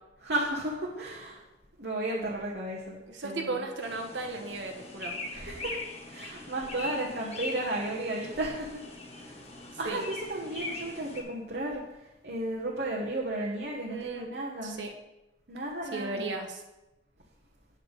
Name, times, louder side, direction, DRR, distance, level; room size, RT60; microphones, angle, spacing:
voice 1, 0.2-1.4 1.8-3.6 5.3-5.8 6.1-8.8 9.2-14.8 15.5-16.3, right 1 dB, 60° right, -4 dB, 1.2 m, -34 dB
voice 2, 3.1-5.2 7.0-7.1 9.8-10.0 13.9-14.3 14.6-14.9 15.9-16.6, right 3 dB, 85° right, 3 dB, 1.2 m, -35 dB
sound 1, 3.8-11.2, left 2 dB, 35° left, 1.3 m, -41 dB
8.8 x 7.1 x 4.0 m, 0.96 s
head